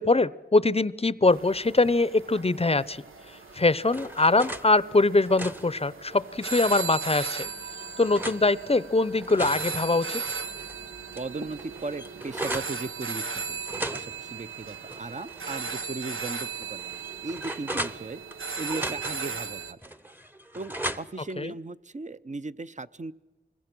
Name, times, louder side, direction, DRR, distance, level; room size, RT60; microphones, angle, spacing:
voice 1, 0.0-3.0 3.5-7.5 8.0-10.2 21.4-21.5, left 3 dB, 30° left, 18 dB, 0.6 m, -23 dB
sound 1, 1.3-19.7, right 5 dB, 90° right, 0.9 m, -37 dB
sound 2, 3.4-4.7 5.1-6.8 7.3-8.4 9.0-10.8 11.1-11.2 11.5-12.8 13.6-15.5 15.8-15.9 16.5-18.4 18.6-19.3 19.8-21.3, right 1 dB, 10° right, 0.9 m, -37 dB
voice 2, 11.2-16.9 17.2-18.2 18.6-19.8 20.5-23.1, right 3 dB, 35° right, 14 dB, 0.7 m, -37 dB
25.5 x 22.0 x 6.1 m, 1.2 s
cardioid pair, 45°, 20 cm